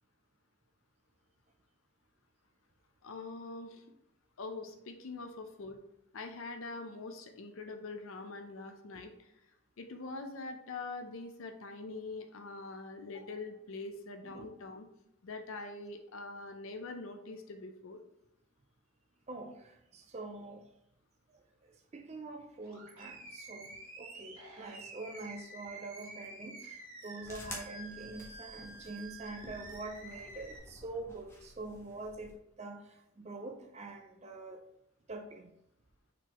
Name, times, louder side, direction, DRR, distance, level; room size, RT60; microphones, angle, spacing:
voice 1, 3.0-3.9 4.4-5.8 6.1-9.3 9.8-14.9 15.2-18.0, left 3 dB, 65° left, 6 dB, 0.5 m, -44 dB
voice 2, 19.3-20.7 21.3-34.6 35.1-35.5, right 2 dB, 30° right, 3 dB, 0.4 m, -45 dB
Animal, 22.6-30.6, right 2 dB, 70° right, 1.7 m, -49 dB
sound 1, 27.2-32.4, left 1 dB, 10° left, 0.8 m, -51 dB
4.5 x 4.0 x 2.9 m, 0.79 s
head